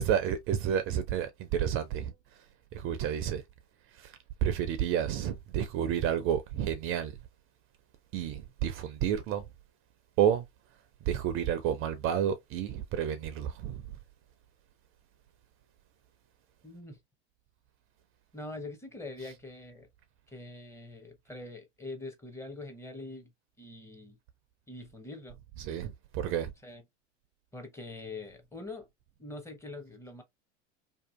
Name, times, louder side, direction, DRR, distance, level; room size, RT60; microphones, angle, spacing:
voice 1, 0.0-2.1 2.7-3.4 4.0-7.1 8.1-9.4 10.2-10.4 11.0-13.8 25.6-26.5, right 9 dB, 40° right, 0.4 m, -30 dB
voice 2, 16.6-17.0 18.3-19.9 20.3-23.3 23.6-24.2 24.7-25.4 26.6-26.8 27.5-28.9 29.2-30.2, left 2 dB, 10° left, 0.6 m, -43 dB
2.7 x 2.4 x 2.3 m
hypercardioid pair, 90°, 35 cm